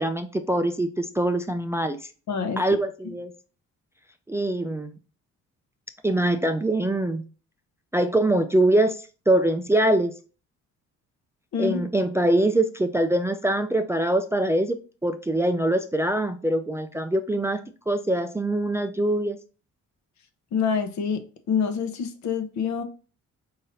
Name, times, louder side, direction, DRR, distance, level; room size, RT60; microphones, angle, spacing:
voice 1, 0.0-2.1 2.6-3.3 4.3-5.0 6.0-7.2 7.9-10.1 11.6-17.6 17.9-19.4, right 1 dB, 10° right, 0.3 m, -23 dB
voice 2, 2.3-2.6 11.5-11.8 20.5-21.2 21.5-22.8, left 6 dB, 65° left, 0.8 m, -26 dB
4.2 x 3.9 x 2.6 m
cardioid pair, 90°, 30 cm